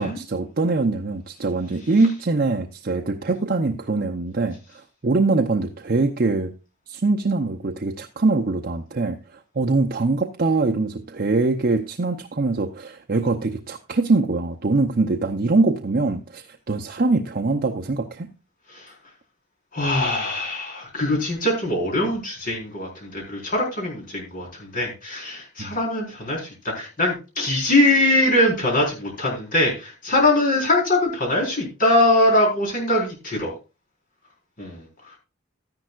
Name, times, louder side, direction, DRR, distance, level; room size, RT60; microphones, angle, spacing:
voice 1, 0.0-6.5 6.9-18.3 25.6-25.7, right 3 dB, 45° right, 3 dB, 0.7 m, -23 dB
voice 2, 19.7-33.5 34.6-34.8, left 1 dB, 45° left, -1 dB, 4.5 m, -22 dB
13.0 x 10.5 x 2.4 m, 0.29 s
head